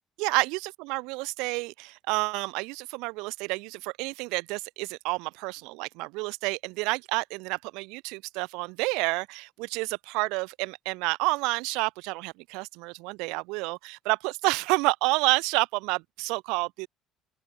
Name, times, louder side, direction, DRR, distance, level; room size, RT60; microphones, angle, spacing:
voice 1, 0.2-16.9, right 26 dB, 65° right, 0.4 m, -29 dB
open air
figure-of-eight pair, 55°, 0 cm